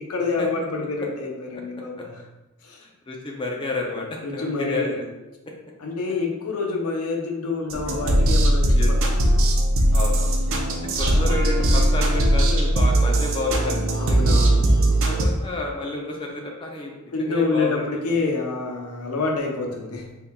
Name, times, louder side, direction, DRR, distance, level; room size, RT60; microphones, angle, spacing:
voice 1, 0.0-2.2 2.6-2.8 4.2-5.0 5.8-9.6 11.0-11.8 14.0-15.1 17.1-20.1, left 3 dB, 90° left, 1 dB, 0.7 m, -28 dB
voice 2, 2.8-5.1 8.7-8.9 9.9-10.4 11.0-14.4 15.0-16.9 17.2-17.8 18.1-18.3, left 3 dB, 25° left, 0 dB, 0.5 m, -30 dB
sound 1, 7.7-15.3, right 1 dB, 65° right, 0.6 m, -19 dB
4.1 x 3.7 x 2.3 m, 1.0 s
head